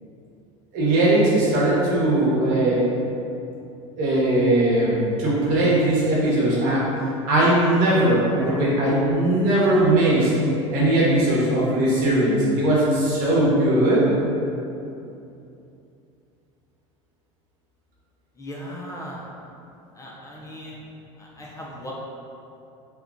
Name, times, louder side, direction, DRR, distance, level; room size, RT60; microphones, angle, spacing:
voice 1, 0.7-2.8 4.0-6.9 7.3-10.3 10.7-14.1, right 1 dB, 60° right, -6 dB, 1.1 m, -19 dB
voice 2, 18.4-19.2 20.0-20.8 21.2-21.9, equal, 20° left, -4 dB, 0.6 m, -38 dB
2.9 x 2.3 x 3.5 m, 2.7 s
hypercardioid pair, 85°, 16 cm